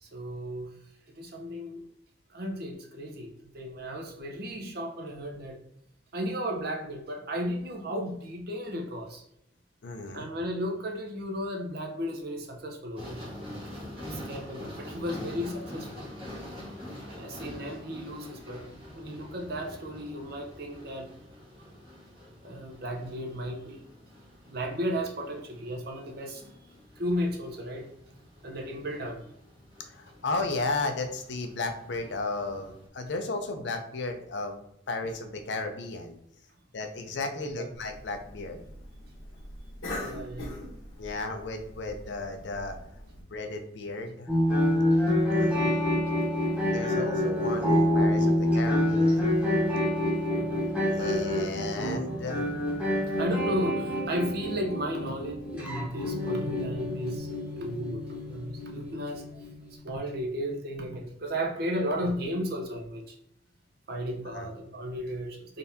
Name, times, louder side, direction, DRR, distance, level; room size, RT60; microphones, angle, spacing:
voice 1, 0.0-0.8 1.2-1.8 2.3-3.3 3.5-5.6 6.1-9.2 10.1-13.2 14.1-16.0 17.1-18.6 19.0-21.1 22.4-23.8 24.5-26.7 27.0-27.8 28.4-29.2 37.3-37.7 40.0-40.7 45.3-45.7 50.3-50.7 53.0-57.3 57.6-59.2 59.8-63.2 63.9-65.6, equal, 50° right, 2 dB, 0.7 m, -34 dB
voice 2, 9.8-10.3 29.8-34.6 34.9-36.2 36.7-38.6 41.0-42.8 43.2-44.3 45.3-45.6 46.7-49.3 50.9-52.5 64.3-64.5, left 3 dB, 60° left, 5 dB, 0.5 m, -34 dB
sound 1, 13.0-32.9, left 1 dB, 30° right, 1.4 m, -45 dB
Cough, 37.7-43.2, left 1 dB, 80° left, 1.2 m, -42 dB
sound 2, 44.3-59.7, left 1 dB, 5° right, 1.1 m, -27 dB
3.9 x 3.3 x 2.7 m, 0.76 s
head